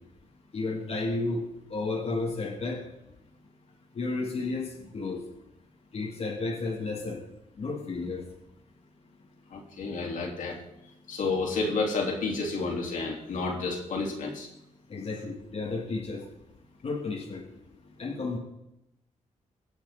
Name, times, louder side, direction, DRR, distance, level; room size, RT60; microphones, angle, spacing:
voice 1, 0.5-1.4 1.7-2.8 3.9-5.2 5.9-7.2 7.6-8.2 14.9-16.2 16.8-17.4 18.0-18.4, left 3 dB, 50° left, -2 dB, 2.7 m, -32 dB
voice 2, 9.5-10.6 11.1-14.5, left 3 dB, 75° left, -1 dB, 4.0 m, -30 dB
23.0 x 8.3 x 4.3 m, 0.84 s
cardioid pair, 100°, 14 cm